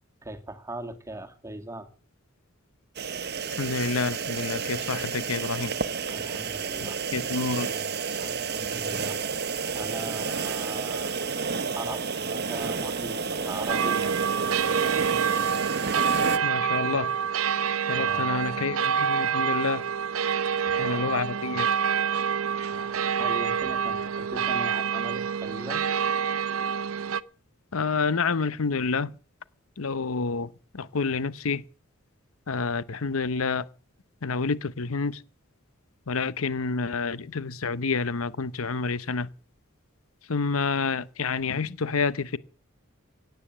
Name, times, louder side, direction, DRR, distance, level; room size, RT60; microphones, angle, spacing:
voice 1, 0.2-1.9 6.1-7.0 8.2-9.2 9.7-11.3 11.7-14.1 18.0-18.6 20.6-21.2 22.5-25.8, right 2 dB, 15° right, 1.9 m, -40 dB
sound 1, 3.0-16.4, right 5 dB, 50° right, 1.0 m, -31 dB
voice 2, 3.6-5.7 6.8-7.7 16.4-17.1 17.9-19.8 20.8-21.7 27.7-29.1 29.8-30.5 30.7-31.6 32.5-33.7 34.2-35.2 36.1-39.3 40.3-42.4, left 4 dB, 85° left, 0.8 m, -28 dB
sound 2, 13.7-27.2, right 7 dB, 85° right, 0.7 m, -27 dB
17.0 x 9.3 x 7.3 m
head